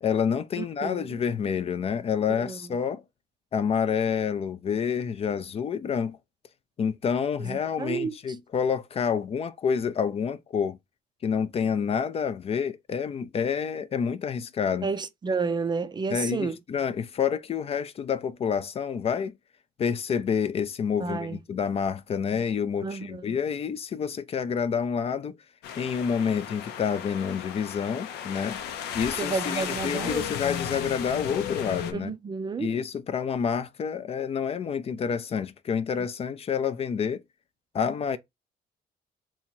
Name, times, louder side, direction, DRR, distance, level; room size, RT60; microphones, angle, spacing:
voice 1, 0.0-3.0 3.5-6.2 6.8-10.8 11.2-14.9 16.1-19.3 19.8-25.4 25.8-28.6 28.9-32.1 32.6-37.2 37.7-38.2, left 7 dB, 35° left, 0.4 m, -28 dB
voice 2, 0.6-1.2 2.3-2.6 7.4-8.2 14.8-16.6 21.0-21.4 22.8-23.4 29.2-30.3 31.9-32.7, right 4 dB, 25° right, 0.4 m, -31 dB
sound 1, 25.6-31.9, left 8 dB, 85° left, 0.7 m, -34 dB
2.9 x 2.8 x 4.4 m
cardioid pair, 110°, 17 cm